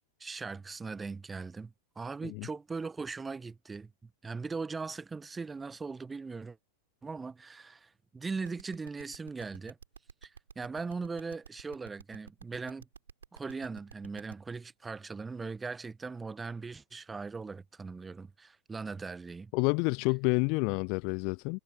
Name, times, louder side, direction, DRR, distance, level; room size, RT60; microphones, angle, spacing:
voice 1, 0.2-6.6 7.0-9.8 10.2-12.9 13.3-19.5, right 4 dB, 15° right, 1.2 m, -39 dB
sound 1, 8.4-14.3, right 6 dB, 70° right, 4.1 m, -50 dB
voice 2, 19.5-21.6, left 34 dB, 45° left, 0.4 m, -29 dB
figure-of-eight pair, 90°, 0 cm